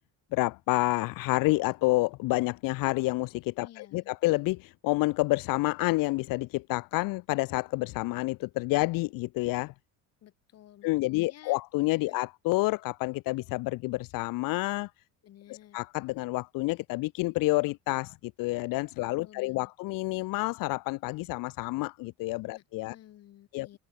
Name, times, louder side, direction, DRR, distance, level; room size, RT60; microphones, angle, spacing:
voice 1, 0.3-9.7 10.8-14.9 15.5-22.9 23.5-23.8, left 22 dB, 75° left, 1.8 m, -29 dB
voice 2, 3.6-4.1 10.2-11.6 12.0-12.2 15.2-15.8 19.0-19.7 22.5-23.8, left 12 dB, 45° left, 7.7 m, -54 dB
cardioid pair, 170°, 34 cm